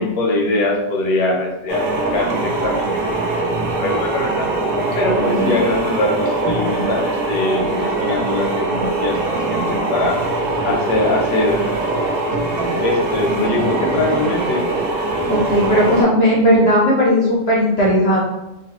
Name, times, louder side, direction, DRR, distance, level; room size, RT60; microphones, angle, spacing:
voice 1, 0.0-1.8 2.1-4.5 4.9-9.2 9.5-10.2 10.6-11.7 12.8-14.6, left 2 dB, 75° left, 0 dB, 1.1 m, -22 dB
sound 1, 1.7-16.0, right 2 dB, 75° right, 1.2 m, -22 dB
voice 2, 5.3-5.7 13.4-13.7 15.3-18.2, equal, 60° left, -5 dB, 0.6 m, -16 dB
3.0 x 2.1 x 2.8 m, 0.99 s
omnidirectional pair, 1.7 m